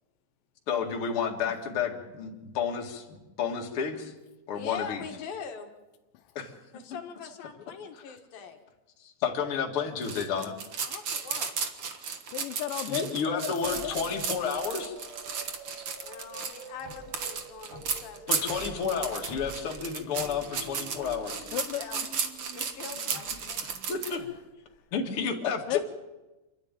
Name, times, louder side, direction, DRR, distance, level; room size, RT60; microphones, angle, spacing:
voice 1, 0.7-4.1 4.5-5.0 6.3-6.5 9.0-10.5 12.9-14.9 18.3-21.5 23.9-24.2 24.9-25.8, left 6 dB, 40° left, 2.4 m, -31 dB
voice 2, 4.5-5.7 6.7-8.6 10.9-11.5 16.0-18.6 21.7-22.0 22.5-23.6, left 7 dB, 65° left, 3.0 m, -42 dB
sound 1, 10.0-24.2, right 6 dB, 85° right, 1.2 m, -34 dB
voice 3, 12.3-14.2 21.5-21.8 24.2-24.3 25.7-25.8, left 12 dB, 85° left, 1.9 m, -34 dB
sound 2, 12.7-24.4, right 3 dB, 50° right, 5.5 m, -49 dB
sound 3, 13.6-24.8, equal, 70° right, 7.6 m, -50 dB
28.0 x 12.0 x 9.1 m
omnidirectional pair, 5.0 m